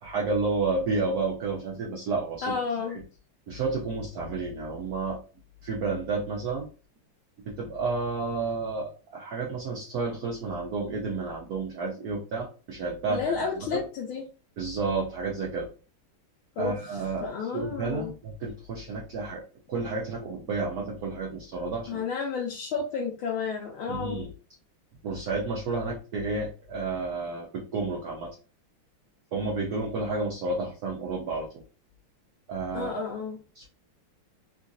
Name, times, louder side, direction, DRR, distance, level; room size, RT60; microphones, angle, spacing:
voice 1, 0.0-2.6 2.9-3.0 3.5-5.2 5.6-6.7 7.4-13.8 14.6-15.7 16.6-19.4 19.7-22.0 23.9-24.3 25.0-28.4 29.3-31.6 32.5-33.0 33.5-33.7, right 3 dB, 75° right, -1 dB, 0.8 m, -31 dB
voice 2, 2.4-3.0 13.1-14.2 16.6-18.1 21.9-24.3 32.7-33.4, left 5 dB, 75° left, -2 dB, 1.4 m, -31 dB
3.8 x 2.5 x 2.5 m, 0.35 s
omnidirectional pair, 2.4 m